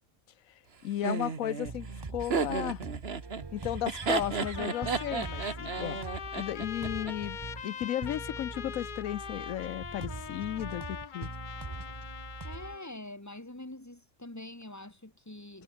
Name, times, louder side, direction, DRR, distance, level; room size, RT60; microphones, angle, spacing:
voice 1, 0.8-2.8 3.5-7.4 7.6-11.3, left 12 dB, 90° left, 1.1 m, -35 dB
Laughter, 1.0-7.1, right 5 dB, 50° right, 1.8 m, -33 dB
sound 1, 1.6-12.8, right 4 dB, 25° right, 0.7 m, -43 dB
Trumpet, 4.0-12.9, left 7 dB, 45° left, 0.8 m, -42 dB
voice 2, 12.4-15.6, left 1 dB, 10° left, 2.4 m, -45 dB
omnidirectional pair, 1.4 m